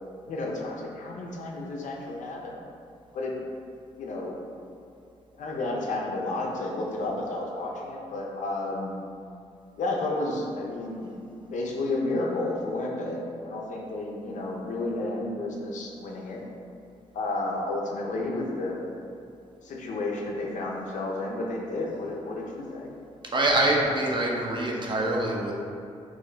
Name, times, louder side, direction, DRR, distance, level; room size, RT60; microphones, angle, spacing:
voice 1, 0.2-2.6 3.1-3.4 4.0-4.4 5.3-9.0 9.8-11.1 11.5-16.4 17.1-18.8 19.6-22.9, left 2 dB, 65° left, -1 dB, 0.5 m, -31 dB
voice 2, 23.3-25.5, right 1 dB, 35° right, -1 dB, 0.6 m, -25 dB
3.0 x 2.1 x 3.8 m, 2.5 s
supercardioid pair, 45°, 14 cm